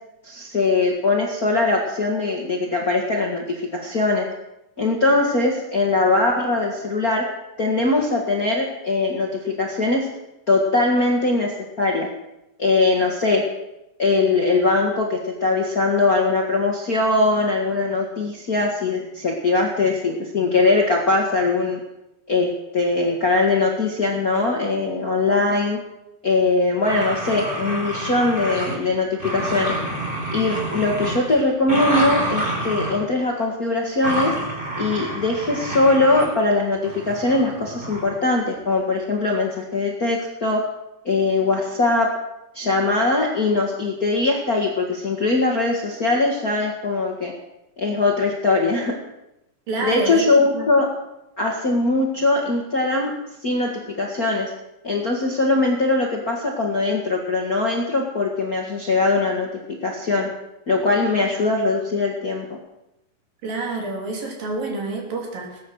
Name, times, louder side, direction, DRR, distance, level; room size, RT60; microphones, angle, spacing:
voice 1, 0.2-4.3 4.8-7.2 7.6-10.1 10.5-12.1 12.6-13.4 14.0-21.8 22.3-25.8 26.2-29.7 30.3-34.4 34.8-40.6 41.0-42.1 42.5-47.3 47.8-49.0 49.8-50.9 51.4-53.1 53.4-54.5 54.8-59.5 59.8-60.3 60.7-62.6, left 3 dB, 40° left, 0 dB, 1.3 m, -21 dB
sound 1, 26.8-28.9 29.2-33.0 34.0-36.3 36.8-38.1, right 1 dB, 15° right, 3.9 m, -28 dB
voice 2, 49.7-50.2 50.5-50.7 63.4-65.6, right 3 dB, 80° right, 1 dB, 4.7 m, -28 dB
20.0 x 9.7 x 6.3 m, 0.90 s
omnidirectional pair, 4.0 m